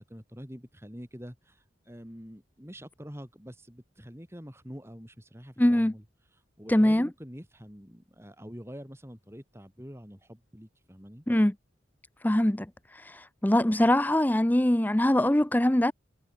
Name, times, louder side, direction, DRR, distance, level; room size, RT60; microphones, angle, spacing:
voice 1, 0.0-6.0 6.3-11.2, equal, 15° right, 5.2 m, -46 dB
voice 2, 5.6-5.9 6.7-7.1 11.3-11.5 12.2-12.7 13.0-15.9, left 1 dB, 10° left, 0.6 m, -23 dB
head